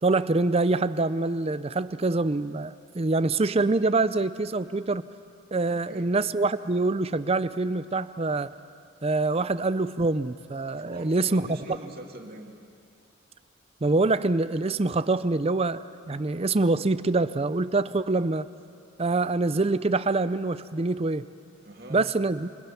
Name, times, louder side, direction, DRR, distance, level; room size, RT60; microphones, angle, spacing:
voice 1, 0.0-5.1 5.5-8.5 9.0-11.5 13.8-18.5 19.0-21.3 21.9-22.5, right 3 dB, 30° right, 14 dB, 0.5 m, -25 dB
voice 2, 5.7-6.1 10.7-12.5 21.6-22.1, right 1 dB, 45° right, 1 dB, 2.5 m, -43 dB
28.0 x 26.5 x 5.9 m, 2.4 s
head